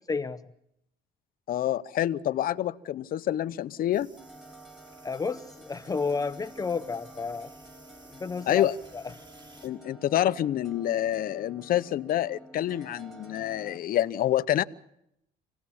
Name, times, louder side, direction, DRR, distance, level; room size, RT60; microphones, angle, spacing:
voice 1, 0.1-0.4 5.0-7.5 8.2-9.0, left 4 dB, 20° left, 0.8 m, -31 dB
voice 2, 1.5-4.1 8.5-8.8 9.6-14.6, left 12 dB, 60° left, 0.9 m, -27 dB
sound 1, 3.9-9.7, right 2 dB, 25° right, 4.9 m, -56 dB
sound 2, 4.2-13.8, right 1 dB, ahead, 3.6 m, -50 dB
26.5 x 18.0 x 7.1 m
cardioid pair, 110°, 17 cm